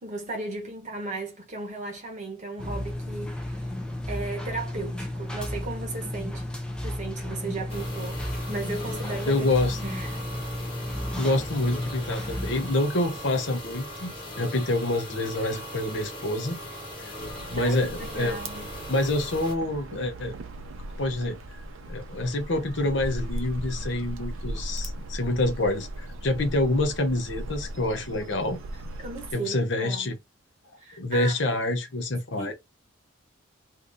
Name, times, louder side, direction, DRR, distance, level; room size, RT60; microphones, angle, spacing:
voice 1, 0.0-3.7 4.1-6.5 6.8-8.2 8.5-9.5 9.8-10.2 17.6-18.7 29.0-30.1 30.8-31.6 32.4-32.5, right 3 dB, 35° right, 1.0 m, -36 dB
sound 1, 2.6-12.7, left 1 dB, 5° left, 0.4 m, -33 dB
sound 2, 7.7-19.5, left 1 dB, 25° left, 1.3 m, -39 dB
voice 2, 9.3-9.8 11.2-16.6 17.0-17.1 17.5-18.4 18.9-20.3 21.0-21.4 21.9-28.6 29.3-30.2 31.0-32.5, left 2 dB, 60° left, 0.8 m, -27 dB
sound 3, 17.2-29.3, right 1 dB, 80° right, 0.6 m, -38 dB
2.7 x 2.6 x 3.4 m
head